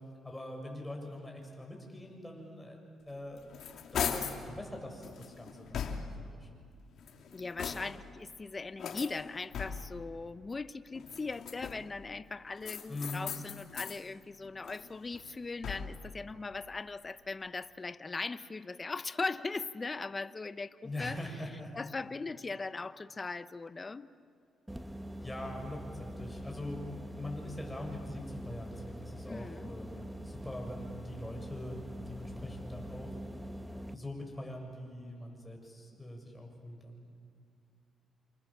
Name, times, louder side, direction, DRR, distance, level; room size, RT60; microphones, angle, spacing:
voice 1, 0.2-2.8 3.1-3.5 3.9-6.5 12.9-13.2 20.8-21.9 25.2-26.8 27.1-31.8 32.1-33.1 33.8-37.2, left 1 dB, 10° left, 1 dB, 7.2 m, -43 dB
sound 1, 3.1-4.5 5.0-6.3 6.9-8.1 8.8-10.0 10.9-12.0 12.6-14.0 14.4-16.1, left 7 dB, 65° left, 2.7 m, -39 dB
voice 2, 7.3-21.2 21.7-24.1 29.3-29.7, left 3 dB, 25° left, 13 dB, 0.9 m, -39 dB
sound 2, 24.7-33.9, equal, 5° right, 1.3 m, -44 dB
27.5 x 27.5 x 7.4 m, 2.4 s
cardioid pair, 90°, 0 cm